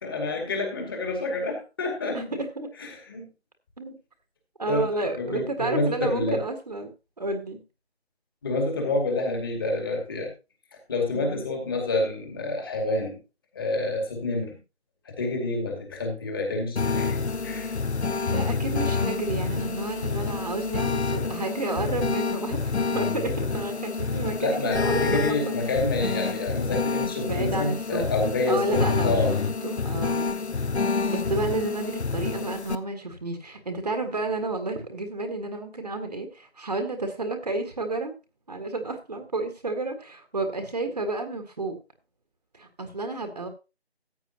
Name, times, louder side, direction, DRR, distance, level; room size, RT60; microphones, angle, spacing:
voice 1, 0.0-2.3 2.8-3.3 4.7-4.8 5.2-6.4 8.4-10.3 10.9-13.2 13.5-14.5 15.1-17.2 17.4-17.7 24.4-29.4, left 2 dB, 20° left, 2 dB, 2.3 m, -28 dB
voice 2, 2.1-2.7 3.8-3.9 4.6-7.6 11.1-11.5 18.2-25.0 25.3-25.6 27.2-28.1 28.5-30.3 31.1-38.1 38.5-41.7 42.5-43.5, right 2 dB, 35° right, 6 dB, 1.7 m, -31 dB
sound 1, 16.8-32.8, left 4 dB, 80° left, 1.0 m, -28 dB
14.5 x 9.2 x 2.9 m, 0.28 s
figure-of-eight pair, 165°, 33 cm